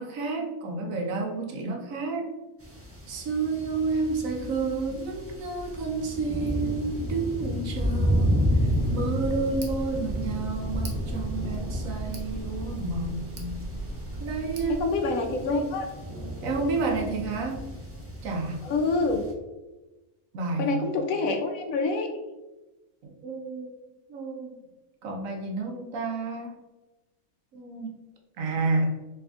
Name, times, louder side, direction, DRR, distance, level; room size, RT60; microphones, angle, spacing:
voice 1, 0.0-2.3 3.1-8.3 8.5-13.5 14.2-14.9 15.3-15.7 16.4-17.6 18.2-18.6 20.3-21.0 23.0-23.8 24.1-24.6 25.0-26.5 27.5-27.9 28.4-29.0, right 3 dB, 65° right, 1 dB, 1.1 m, -30 dB
sound 1, 2.6-19.3, equal, 15° right, 0.5 m, -31 dB
Tick, 8.8-14.8, right 2 dB, 50° right, 0.8 m, -39 dB
voice 2, 14.8-15.9 18.6-19.2 20.6-22.1, left 3 dB, 70° left, 4 dB, 1.0 m, -26 dB
3.7 x 3.4 x 3.5 m, 1.1 s
omnidirectional pair, 1.6 m